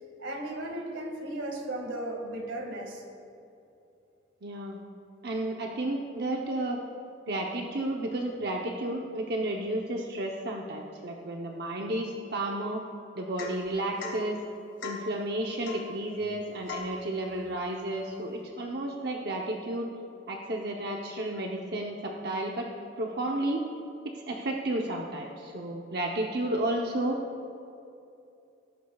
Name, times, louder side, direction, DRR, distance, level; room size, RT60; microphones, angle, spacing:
voice 1, 0.2-3.0, right 1 dB, 80° right, 1 dB, 2.0 m, -35 dB
voice 2, 4.4-4.8 5.2-6.8 7.3-12.8 13.1-14.4 14.8-19.9 20.3-22.7 23.0-23.6 24.0-27.2, right 1 dB, 55° right, 0 dB, 0.8 m, -32 dB
Domestic sounds home sounds / Chink clink / Drip, 13.4-13.7 14.0-14.2 14.8-15.1 15.6-15.9 16.7-17.0, left 4 dB, 80° left, 2.0 m, -38 dB
18.0 x 13.5 x 2.4 m, 2.6 s
head